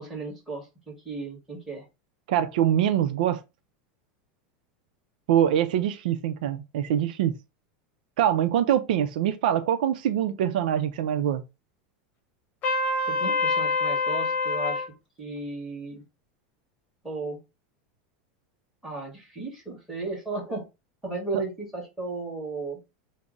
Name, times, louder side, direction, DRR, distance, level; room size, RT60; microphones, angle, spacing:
voice 1, 0.0-1.8 13.1-14.9 15.2-16.0 17.0-17.4 18.8-20.7 21.0-22.8, right 3 dB, 5° right, 1.8 m, -35 dB
voice 2, 2.3-3.4 5.3-7.4 8.2-11.4, right 10 dB, 80° right, 0.4 m, -24 dB
Trumpet, 12.6-14.9, left 3 dB, 35° left, 0.9 m, -25 dB
3.5 x 2.0 x 3.8 m
supercardioid pair, 150°, 5 cm